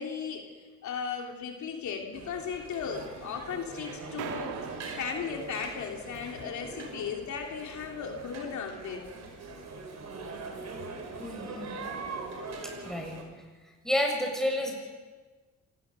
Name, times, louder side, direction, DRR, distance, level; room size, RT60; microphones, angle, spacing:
voice 1, 0.0-9.1, left 6 dB, 70° left, 2 dB, 3.1 m, -36 dB
sound 1, 2.1-13.2, right 3 dB, 60° right, 4.9 m, -42 dB
sound 2, 4.2-6.2, right 9 dB, 90° right, 1.7 m, -41 dB
voice 2, 11.2-11.8 12.6-13.4 13.8-14.7, left 1 dB, ahead, 1 dB, 7.1 m, -31 dB
26.0 x 19.0 x 6.8 m, 1.3 s
cardioid pair, 90°, 30 cm